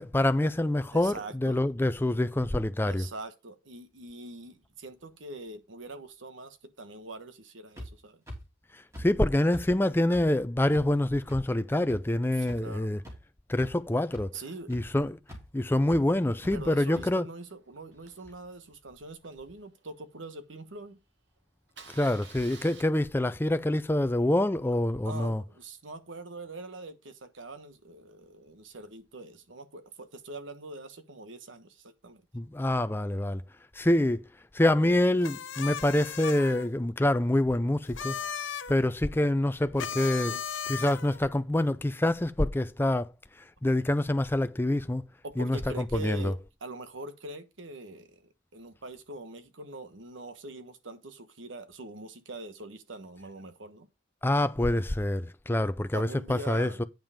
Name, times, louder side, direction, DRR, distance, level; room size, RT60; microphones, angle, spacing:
voice 1, 0.0-3.1 9.0-13.0 13.5-14.4 14.7-15.2 15.5-17.3 21.9-25.4 32.3-33.4 33.7-34.2 34.5-38.2 38.7-40.3 40.7-43.1 43.6-45.0 45.4-46.3 54.2-56.8, left 1 dB, 10° left, 0.5 m, -26 dB
voice 2, 0.9-1.6 2.8-8.2 12.3-12.9 14.3-14.7 16.5-21.0 25.0-32.2 40.3-40.4 45.2-48.2 48.5-53.9 55.9-56.8, right 2 dB, 80° right, 1.2 m, -43 dB
sound 1, 7.8-7.9 8.3-8.4 8.9-9.0 9.5-9.6 10.1-10.2 10.7-10.8 11.3-11.4 11.9-12.0 12.5-12.6 13.0-13.1 13.5-13.8 14.1-14.2 14.7-14.8 15.3-15.4 15.9-16.0 16.4-16.5 16.9-17.0, equal, 15° right, 3.2 m, -41 dB
Engine starting, 16.3-20.5 20.9-21.0 21.2-21.4 21.7-22.8, right 5 dB, 65° right, 1.8 m, -53 dB
sound 2, 35.2-36.7 37.9-38.7 39.8-41.2, left 7 dB, 80° left, 0.7 m, -36 dB
9.0 x 5.6 x 4.9 m
head